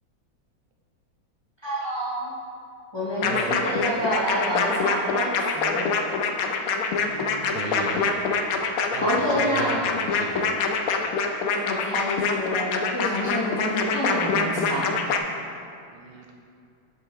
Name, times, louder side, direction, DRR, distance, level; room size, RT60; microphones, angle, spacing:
voice 1, 1.6-2.3 2.9-5.9 9.0-9.9 11.5-14.9, equal, 15° left, -8 dB, 1.1 m, -28 dB
sound 1, 3.2-15.2, left 5 dB, 80° left, 0.7 m, -25 dB
voice 2, 3.2-3.8 7.0-8.1 8.9-10.5 15.9-16.3, right 3 dB, 70° right, 1 dB, 1.3 m, -35 dB
7.8 x 7.0 x 3.2 m, 2.4 s
omnidirectional pair, 2.1 m